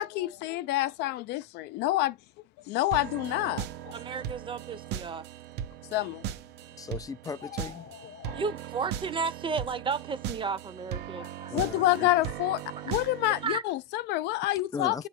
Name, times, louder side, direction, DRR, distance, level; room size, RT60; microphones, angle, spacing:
voice 1, 0.0-2.2 2.7-3.9 5.9-6.2 11.2-15.1, left 16 dB, 90° left, 0.4 m, -28 dB
sound 1, 2.9-13.6, right 10 dB, 90° right, 0.6 m, -38 dB
voice 2, 3.9-5.2 8.3-12.1 13.3-13.6, right 5 dB, 30° right, 0.6 m, -34 dB
voice 3, 6.8-7.9 11.5-12.1 14.7-15.1, left 5 dB, 20° left, 0.4 m, -37 dB
sound 2, 7.3-8.5, left 10 dB, 60° left, 0.8 m, -45 dB
7.7 x 3.0 x 4.3 m
cardioid pair, 110°, 17 cm